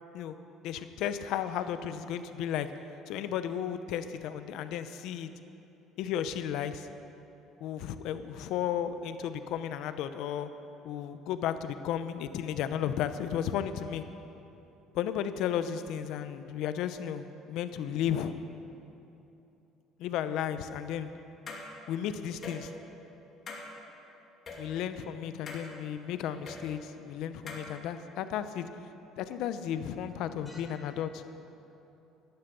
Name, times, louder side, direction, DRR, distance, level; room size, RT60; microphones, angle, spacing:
voice 1, 0.6-2.7 3.1-5.3 6.0-6.9 7.6-10.5 10.8-14.0 14.9-18.3 20.0-21.1 21.9-22.7 24.6-28.7 29.2-31.2, left 9 dB, 70° left, 11 dB, 0.8 m, -34 dB
sound 1, 21.5-21.6 22.3-22.6 23.5-23.6 24.5-24.6 25.5-25.7 26.5-26.6 27.5-27.6, left 4 dB, 40° left, 2.4 m, -41 dB
voice 2, 30.0-31.2, left 1 dB, 15° left, -4 dB, 3.3 m, -54 dB
11.5 x 11.5 x 6.9 m, 3.0 s
cardioid pair, 120°, 0 cm